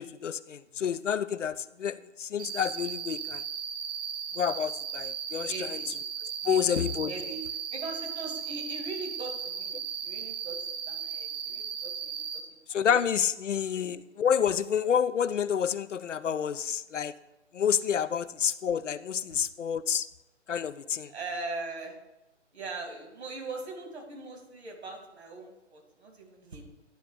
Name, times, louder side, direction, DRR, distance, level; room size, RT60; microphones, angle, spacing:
voice 1, 0.0-3.4 4.4-5.5 6.4-7.1 12.7-17.1 17.5-20.1 20.5-21.1, left 8 dB, 80° left, 14 dB, 0.6 m, -29 dB
Cricket, 2.4-12.4, right 7 dB, 20° right, 0.8 m, -36 dB
voice 2, 5.5-5.9 6.4-7.4 7.7-12.4 12.7-12.9 21.0-21.9 22.5-26.6, right 3 dB, 60° right, 2 dB, 2.7 m, -40 dB
11.0 x 3.7 x 6.6 m, 0.95 s
figure-of-eight pair, 140°, 36 cm